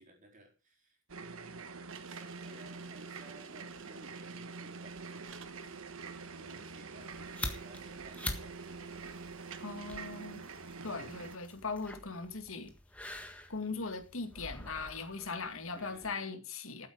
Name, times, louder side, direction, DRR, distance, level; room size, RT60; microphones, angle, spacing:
voice 1, 0.0-1.6 2.1-9.3 10.9-11.1 15.8-16.3, right 1 dB, 40° right, 4.1 m, -58 dB
sound 1, 1.1-11.4, right 4 dB, 80° right, 1.3 m, -46 dB
sound 2, 1.9-10.0, right 8 dB, 65° right, 1.2 m, -56 dB
sound 3, 7.0-16.2, left 1 dB, 5° left, 1.6 m, -46 dB
voice 2, 9.6-10.4 10.8-12.7 13.5-16.9, left 4 dB, 75° left, 2.2 m, -39 dB
14.0 x 8.1 x 5.2 m
head